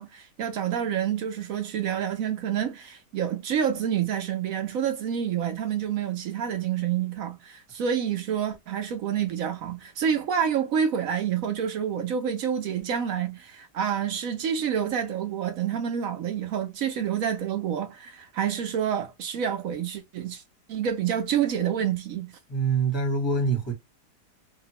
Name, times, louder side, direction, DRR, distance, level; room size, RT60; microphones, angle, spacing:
voice 1, 0.0-20.4 20.7-22.3, right 8 dB, 65° right, 0.8 m, -28 dB
voice 2, 22.5-23.7, right 4 dB, 20° left, 0.8 m, -25 dB
2.8 x 2.4 x 2.7 m
omnidirectional pair, 1.9 m